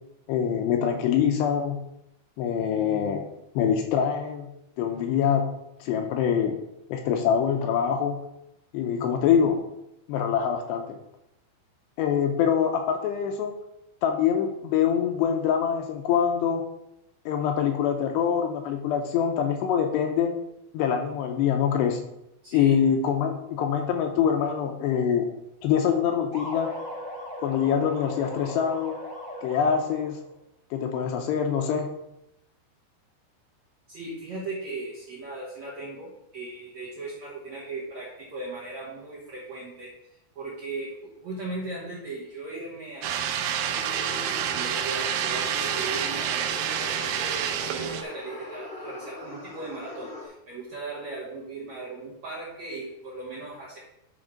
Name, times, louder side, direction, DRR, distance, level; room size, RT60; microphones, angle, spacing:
voice 1, 0.3-1.8 2.4-3.3 3.6-4.5 4.8-5.5 5.8-6.6 6.9-8.2 8.7-9.5 10.1-11.0 12.0-13.5 14.0-16.6 17.3-20.3 20.7-22.0 22.5-25.3 25.6-26.7 27.4-29.0 29.4-30.2 30.7-31.9, left 8 dB, 80° left, 4 dB, 2.6 m, -24 dB
voice 2, 22.4-22.7 33.9-39.9 40.4-53.8, right 3 dB, 70° right, -5 dB, 1.7 m, -38 dB
sound 1, 26.3-30.2, equal, 5° left, 0.9 m, -38 dB
sound 2, 43.0-48.0, right 9 dB, 85° right, 2.3 m, -28 dB
sound 3, 43.7-50.3, left 2 dB, 45° left, 0.7 m, -40 dB
9.8 x 4.3 x 5.1 m, 0.84 s
omnidirectional pair, 5.3 m